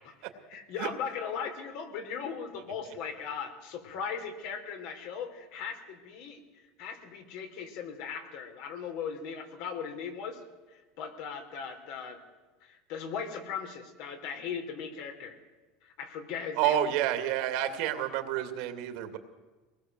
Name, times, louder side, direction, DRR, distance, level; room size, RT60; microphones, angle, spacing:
voice 1, 0.5-6.4 6.8-10.4 10.7-12.2 12.6-15.4 15.8-16.8, left 6 dB, 65° left, 5 dB, 4.0 m, -38 dB
voice 2, 16.6-19.2, right 11 dB, 65° right, 7 dB, 2.6 m, -29 dB
24.0 x 19.0 x 7.8 m, 1.3 s
supercardioid pair, 145°, 0 cm